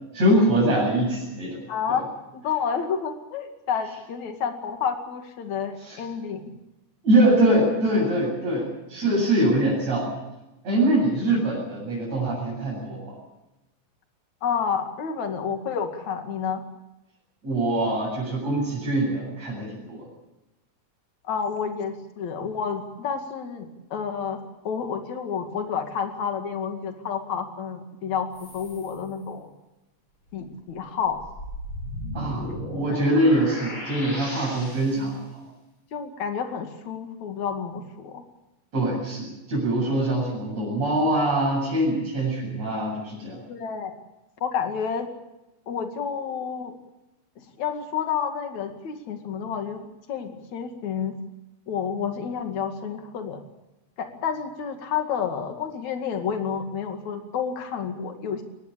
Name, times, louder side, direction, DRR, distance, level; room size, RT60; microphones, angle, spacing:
voice 1, 0.1-1.6 1.9-2.0 5.8-6.0 7.0-10.1 10.6-13.2 17.4-20.1 32.1-35.4 38.7-43.4, right 1 dB, 60° right, -5 dB, 9.4 m, -23 dB
voice 2, 1.7-2.0 2.3-6.5 14.4-16.6 21.3-24.4 24.7-29.5 30.3-31.2 32.9-33.0 35.0-35.1 35.9-38.2 43.5-43.9 44.4-45.1 45.7-46.7 47.4-51.2 51.7-53.4 54.0-58.4, left 7 dB, 70° left, 5 dB, 3.6 m, -30 dB
sound 1, 28.3-29.0 30.3-30.4 31.0-35.1, left 1 dB, 40° left, 7.9 m, -36 dB
23.0 x 20.0 x 8.5 m, 0.96 s
omnidirectional pair, 3.4 m